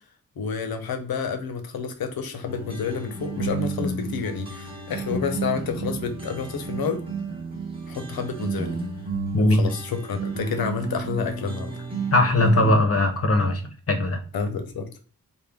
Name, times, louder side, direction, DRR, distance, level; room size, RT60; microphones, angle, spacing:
voice 1, 0.4-7.0 7.9-8.8 9.4-11.9 14.3-15.0, left 5 dB, 80° left, 7 dB, 0.7 m, -29 dB
sound 1, 2.5-12.8, right 4 dB, 15° right, 0.9 m, -32 dB
voice 2, 9.3-9.7 12.1-13.6 13.9-14.2, left 1 dB, 40° left, 6 dB, 0.6 m, -19 dB
3.5 x 2.1 x 3.5 m, 0.40 s
wide cardioid pair, 85°, 35 cm